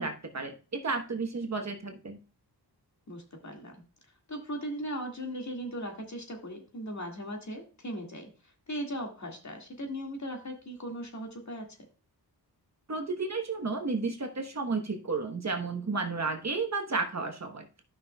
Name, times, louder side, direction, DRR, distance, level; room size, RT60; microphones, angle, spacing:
voice 1, 0.0-2.2 12.9-17.7, right 4 dB, 40° right, 4 dB, 1.1 m, -32 dB
voice 2, 3.1-3.8 4.3-8.3 8.7-11.8, equal, 45° left, 2 dB, 2.0 m, -38 dB
13.5 x 5.7 x 2.3 m, 0.36 s
wide cardioid pair, 90°, 40 cm